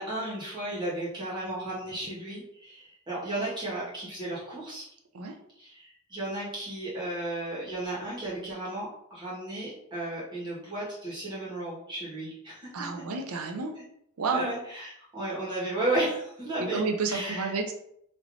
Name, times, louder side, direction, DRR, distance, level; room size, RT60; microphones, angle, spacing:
voice 1, 0.0-4.9 5.6-12.9 13.8-13.9 14.3-16.8 17.1-17.5, right 1 dB, 20° right, -8 dB, 1.5 m, -34 dB
voice 2, 12.7-13.8 14.2-14.5 16.7-17.7, right 4 dB, 85° right, 4 dB, 0.5 m, -30 dB
3.2 x 2.9 x 2.6 m, 0.72 s
head